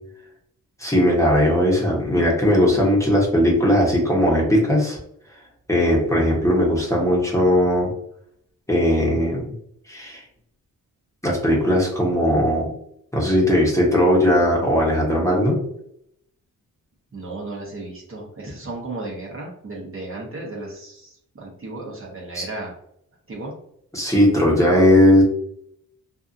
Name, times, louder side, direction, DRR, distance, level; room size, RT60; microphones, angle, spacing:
voice 1, 0.8-5.0 5.7-7.9 8.7-9.4 9.9-10.2 11.2-12.7 13.1-15.6 22.3-22.4 23.9-25.2, equal, 10° left, -4 dB, 0.9 m, -18 dB
voice 2, 17.1-22.7 23.3-23.5, right 2 dB, 40° right, -3 dB, 0.9 m, -34 dB
2.6 x 2.4 x 2.5 m, 0.72 s
cardioid pair, 75°, 35 cm